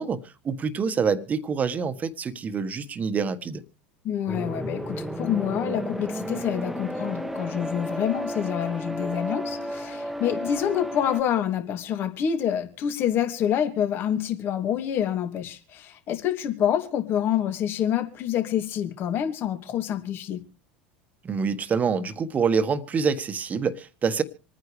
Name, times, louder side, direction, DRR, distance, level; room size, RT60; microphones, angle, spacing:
voice 1, 0.0-3.6 21.2-24.2, right 5 dB, 30° right, 1.5 m, -26 dB
voice 2, 4.0-20.4, left 9 dB, 50° left, 2.7 m, -27 dB
sound 1, 4.3-11.2, equal, 5° right, 1.5 m, -32 dB
27.0 x 9.7 x 3.3 m
hypercardioid pair, 80°, 5 cm